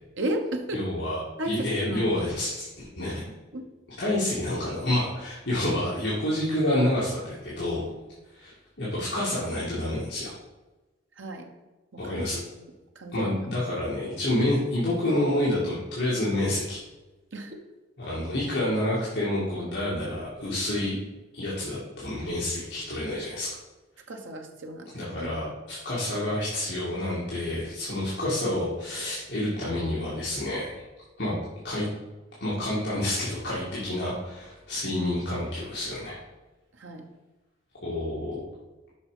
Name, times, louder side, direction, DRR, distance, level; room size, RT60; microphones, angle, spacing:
voice 1, 0.2-0.9 1.4-2.1 3.5-3.6 11.2-11.5 12.0-12.2 12.9-13.4 17.3-17.6 24.1-24.9 25.2-25.3 31.2-31.4 36.8-37.0, right 1 dB, 80° right, 3 dB, 1.2 m, -33 dB
voice 2, 0.7-3.3 4.0-7.9 8.3-10.3 12.0-12.4 13.1-16.8 18.0-21.0 21.3-23.5 24.9-30.7 31.2-31.3 31.6-31.9 32.4-36.2 37.8-38.4, left 1 dB, 60° left, -8 dB, 2.0 m, -28 dB
7.1 x 5.4 x 4.9 m, 1.1 s
head